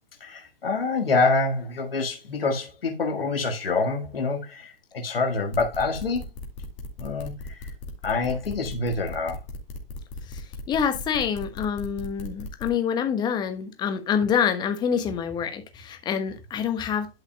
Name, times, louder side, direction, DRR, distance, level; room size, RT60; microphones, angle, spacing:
voice 1, 0.2-6.3 7.0-7.7 8.0-9.4, left 3 dB, 75° left, 1.9 m, -26 dB
sound 1, 5.5-12.7, left 2 dB, 30° left, 2.3 m, -37 dB
voice 2, 10.3-17.1, left 7 dB, 15° left, 1.2 m, -26 dB
12.0 x 5.6 x 2.2 m
figure-of-eight pair, 135°, 30 cm